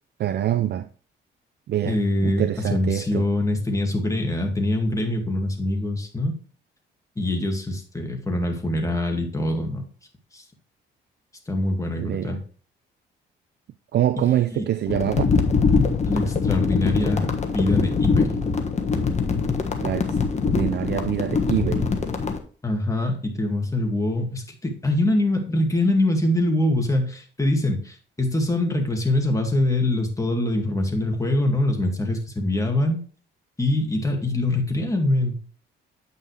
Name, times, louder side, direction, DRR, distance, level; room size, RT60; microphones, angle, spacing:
voice 1, 0.2-0.9 1.7-2.0 2.2-3.2 12.0-12.3 13.9-15.2 19.8-20.0 20.4-21.9, right 11 dB, 60° right, 0.4 m, -24 dB
voice 2, 1.8-6.3 7.2-9.9 10.3-10.4 11.5-12.4 14.3-14.7 16.1-18.5 22.6-33.0 33.6-35.4, left 1 dB, 15° left, 2.1 m, -24 dB
sound 1, 14.9-22.4, left 5 dB, 35° left, 1.4 m, -23 dB
8.8 x 5.6 x 3.3 m
cardioid pair, 90°, 20 cm